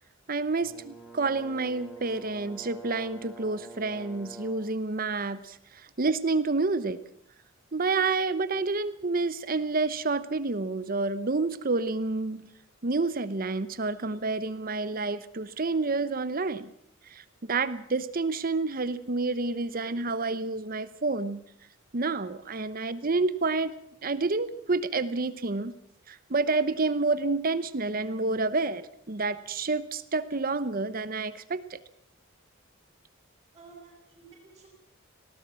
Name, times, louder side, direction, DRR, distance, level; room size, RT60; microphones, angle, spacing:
voice 1, 0.3-7.0 7.7-12.5 12.8-16.7 17.1-21.4 21.9-23.7 24.0-25.7 26.1-31.8, right 3 dB, 45° right, 15 dB, 0.8 m, -29 dB
Brass instrument, 0.6-4.8, right 3 dB, 5° right, 3.2 m, -47 dB
voice 2, 33.5-34.7, right 4 dB, 20° right, -7 dB, 6.1 m, -52 dB
20.0 x 17.5 x 7.5 m, 0.69 s
head